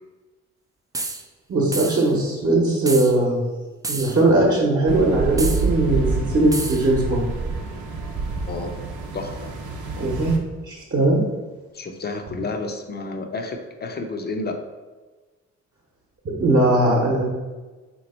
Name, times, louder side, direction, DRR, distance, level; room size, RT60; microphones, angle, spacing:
sound 1, 0.9-1.2 1.7-2.1 2.9-3.2 3.8-4.2 5.4-5.7 6.5-6.9, right 3 dB, 10° right, 0.3 m, -30 dB
voice 1, 1.5-3.4 3.9-6.1 6.3-7.3 9.9-10.4 10.7-11.2 16.2-17.2, right 2 dB, 45° right, -5 dB, 1.0 m, -19 dB
sound 2, 4.9-10.4, right 4 dB, 75° right, 0.7 m, -28 dB
voice 2, 9.1-9.5 11.7-14.6, left 3 dB, 35° left, 5 dB, 0.6 m, -30 dB
3.4 x 3.0 x 4.2 m, 1.3 s
cardioid pair, 90°, 30 cm